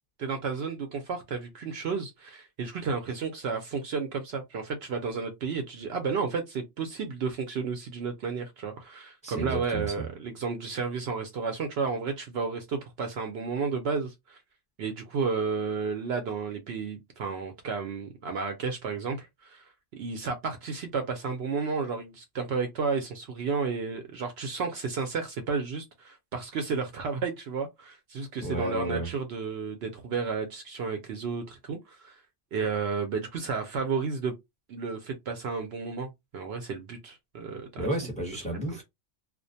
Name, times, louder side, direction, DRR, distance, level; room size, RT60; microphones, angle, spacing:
voice 1, 0.2-14.4 14.8-32.2 32.5-34.3 34.7-37.9, right 5 dB, 65° right, 0.7 m, -32 dB
voice 2, 9.2-10.1 28.4-29.1 37.8-38.8, right 1 dB, 5° left, 0.7 m, -32 dB
2.4 x 2.1 x 2.6 m
omnidirectional pair, 1.2 m